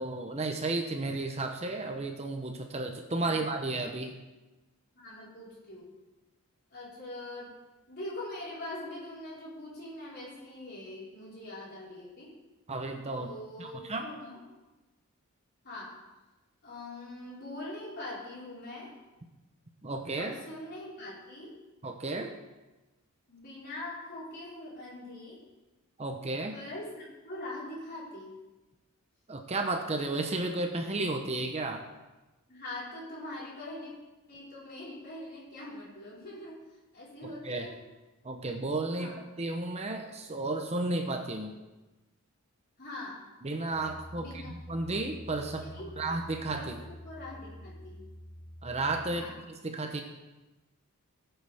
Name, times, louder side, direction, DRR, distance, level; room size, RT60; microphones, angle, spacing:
voice 1, 0.0-4.1 12.7-13.3 13.6-14.1 19.8-20.3 21.8-22.3 26.0-26.5 29.3-31.8 37.2-37.7 38.2-39.1 39.4-41.5 43.4-45.7 46.0-46.7 48.6-49.3 49.6-50.0, right 2 dB, 30° right, 4 dB, 0.9 m, -33 dB
voice 2, 4.9-5.9 6.7-7.5 7.9-12.3 13.1-14.4 15.6-16.0 16.6-18.9 20.1-21.6 23.3-25.4 26.5-28.3 32.5-33.9 34.3-36.6 36.9-37.8 38.9-39.2 42.8-43.3 44.1-44.5 45.6-45.9 46.5-48.0 49.1-49.4, left 1 dB, 45° left, -7 dB, 4.7 m, -43 dB
sound 1, 43.7-49.3, equal, 20° left, 0.8 m, -47 dB
19.0 x 8.1 x 3.6 m, 1.1 s
head